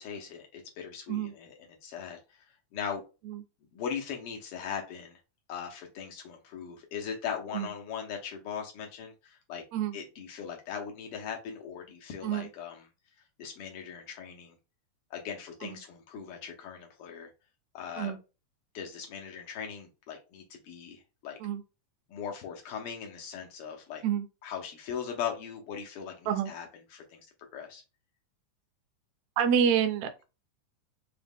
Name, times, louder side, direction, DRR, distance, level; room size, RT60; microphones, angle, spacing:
voice 1, 0.0-2.4 2.7-3.0 3.7-5.2 5.5-9.6 9.9-12.9 13.4-14.5 15.1-17.3 17.7-18.1 18.7-21.4 22.1-24.0 24.4-27.3 27.5-27.8, left 7 dB, 85° left, 1.2 m, -39 dB
voice 2, 29.4-30.2, right 8 dB, 75° right, 1.8 m, -28 dB
4.8 x 2.1 x 3.4 m
omnidirectional pair, 3.3 m